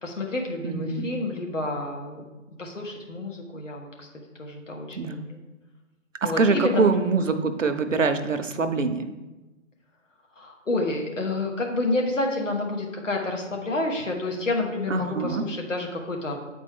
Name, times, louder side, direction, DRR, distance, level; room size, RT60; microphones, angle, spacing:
voice 1, 0.0-2.2 2.6-4.1 4.4-5.4 6.2-7.1 7.3-7.5 10.4-16.4, left 2 dB, 65° left, 1 dB, 1.6 m, -29 dB
voice 2, 0.6-1.1 5.0-5.2 6.2-9.1 14.9-15.5, right 4 dB, 65° right, 9 dB, 0.7 m, -24 dB
8.5 x 4.3 x 3.6 m, 1.1 s
figure-of-eight pair, 160°, 40 cm